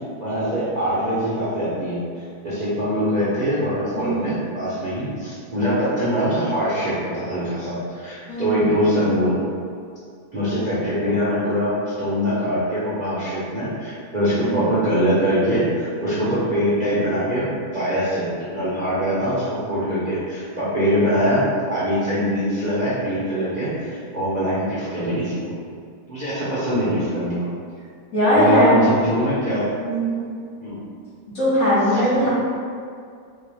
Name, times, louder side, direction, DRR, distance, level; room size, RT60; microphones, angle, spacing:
voice 1, 0.2-2.0 2.4-9.4 10.3-25.4 26.1-27.4 28.3-29.7 30.6-30.8 31.9-32.3, equal, 35° right, -11 dB, 0.7 m, -23 dB
voice 2, 4.0-4.3 8.3-8.6 14.4-14.7 28.1-28.8 29.8-30.3 31.3-32.3, equal, 60° left, -12 dB, 2.1 m, -20 dB
4.5 x 2.6 x 3.4 m, 2.2 s
omnidirectional pair, 1.7 m